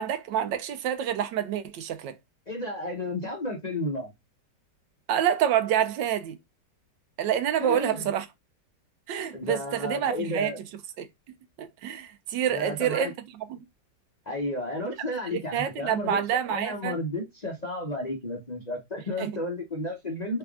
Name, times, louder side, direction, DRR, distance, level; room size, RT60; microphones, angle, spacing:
voice 1, 0.0-2.2 5.1-6.4 7.2-8.3 9.1-10.5 11.0-11.1 11.6-13.6 15.3-17.0 19.2-19.3, right 9 dB, 80° right, 1.3 m, -27 dB
voice 2, 2.5-4.1 7.6-8.1 9.3-10.6 12.5-13.1 14.3-16.2 16.5-20.4, left 1 dB, 35° left, 0.6 m, -32 dB
3.4 x 3.4 x 2.3 m
omnidirectional pair, 1.9 m